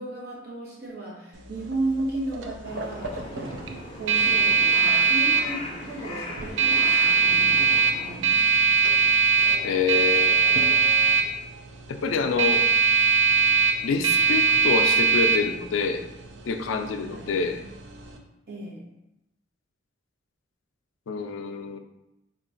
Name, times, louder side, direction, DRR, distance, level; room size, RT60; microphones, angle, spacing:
voice 1, 0.0-3.6 4.0-8.5 17.0-17.3 18.5-18.9, right 2 dB, 50° right, -5 dB, 1.2 m, -34 dB
sound 1, 1.3-18.2, right 5 dB, 70° right, 0.4 m, -22 dB
Crow, 2.6-8.2, left 2 dB, 25° left, 0.5 m, -39 dB
voice 2, 9.6-10.4 11.9-12.6 13.8-16.0 16.5-17.6 21.1-21.8, left 5 dB, 80° left, 7 dB, 0.4 m, -26 dB
3.7 x 2.4 x 3.8 m, 0.89 s
head